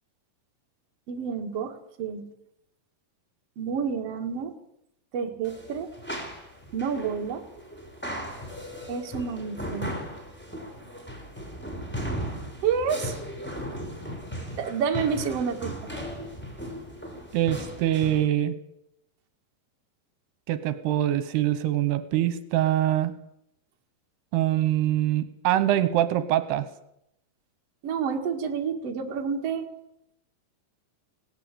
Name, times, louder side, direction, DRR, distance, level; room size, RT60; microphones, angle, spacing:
voice 1, 1.1-2.2 3.6-4.5 5.1-5.9 6.7-7.4 8.9-9.9 12.6-13.1 14.6-15.9 27.8-29.7, right 6 dB, 45° right, 3 dB, 2.5 m, -29 dB
sound 1, 5.4-18.3, equal, 5° left, 3.4 m, -37 dB
voice 2, 17.3-18.6 20.5-23.1 24.3-26.7, right 12 dB, 80° right, 12 dB, 3.0 m, -24 dB
18.0 x 17.5 x 8.4 m, 0.80 s
omnidirectional pair, 4.7 m